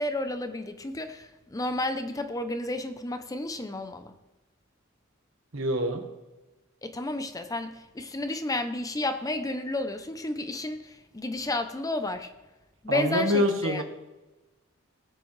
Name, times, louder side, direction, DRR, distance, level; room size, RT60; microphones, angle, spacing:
voice 1, 0.0-4.1 6.8-12.3 12.8-13.8, left 2 dB, 15° left, 8 dB, 0.6 m, -32 dB
voice 2, 5.5-6.0 12.9-13.8, equal, 70° right, 4 dB, 1.5 m, -25 dB
18.0 x 8.3 x 3.3 m, 1.1 s
head